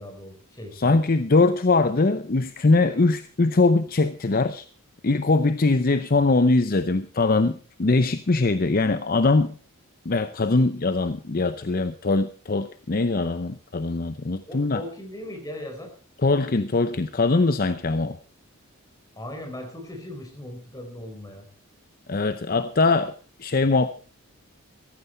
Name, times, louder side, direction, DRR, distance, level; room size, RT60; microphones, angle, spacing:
voice 1, 0.0-0.9 14.5-15.9 19.2-21.5, left 1 dB, 15° left, 3 dB, 4.4 m, -38 dB
voice 2, 0.8-4.7 5.0-9.5 10.1-14.8 16.2-18.2 22.1-23.1 23.4-23.9, left 3 dB, 40° left, 12 dB, 0.6 m, -22 dB
15.0 x 14.5 x 4.4 m, 0.39 s
head